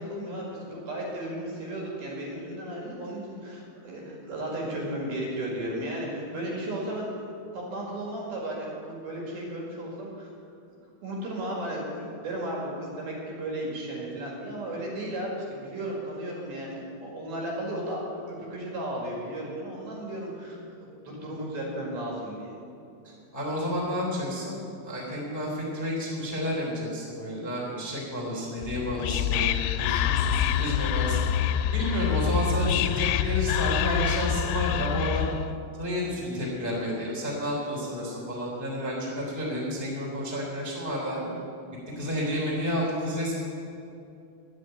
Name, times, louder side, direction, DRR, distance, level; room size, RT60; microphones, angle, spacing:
voice 1, 0.0-7.1 7.5-10.3 11.0-22.6, right 1 dB, 60° right, -2 dB, 3.7 m, -34 dB
voice 2, 23.3-31.2 31.7-35.2 35.8-41.3 41.9-43.4, equal, 5° right, -5 dB, 2.5 m, -31 dB
Whispering, 28.6-35.5, left 9 dB, 90° left, 2.9 m, -26 dB
11.0 x 8.4 x 9.1 m, 2.5 s
omnidirectional pair, 5.2 m